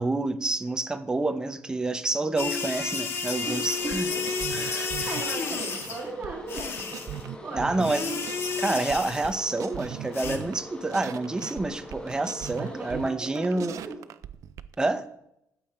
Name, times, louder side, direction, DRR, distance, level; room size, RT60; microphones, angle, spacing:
voice 1, 0.0-4.1 4.5-5.1 7.5-8.1 8.6-13.8 14.8-15.1, right 2 dB, 15° right, 8 dB, 0.8 m, -28 dB
sound 1, 2.4-6.0 6.5-7.2 7.8-9.4 10.1-10.4, left 4 dB, 45° left, 1.7 m, -31 dB
sound 2, 3.4-13.1, left 2 dB, 15° left, 1.3 m, -44 dB
voice 2, 3.4-4.7 5.0-6.8 7.4-8.2 12.6-14.0, right 3 dB, 30° right, -2 dB, 2.2 m, -37 dB
sound 3, 3.8-5.9 6.2-8.6 8.9-10.6 10.9-14.7, right 10 dB, 65° right, 0.5 m, -40 dB
14.0 x 8.5 x 4.4 m, 0.78 s
cardioid pair, 150°, 6 cm